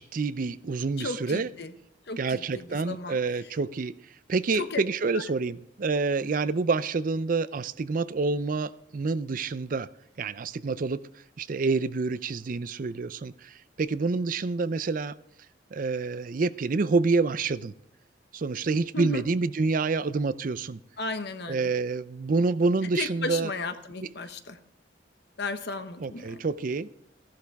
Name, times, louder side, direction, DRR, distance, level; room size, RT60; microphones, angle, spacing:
voice 1, 0.0-1.5 2.2-3.9 4.3-9.9 10.2-11.0 11.4-13.3 13.8-15.1 15.7-17.7 18.3-20.8 21.5-23.5 26.0-26.9, right 4 dB, 45° right, 16 dB, 0.5 m, -27 dB
voice 2, 1.0-1.7 2.1-3.5 4.5-4.8 5.1-5.2 18.9-19.2 21.0-21.7 22.8-24.6 25.4-26.4, left 3 dB, 65° left, 9 dB, 1.1 m, -35 dB
14.5 x 11.5 x 3.5 m, 0.80 s
head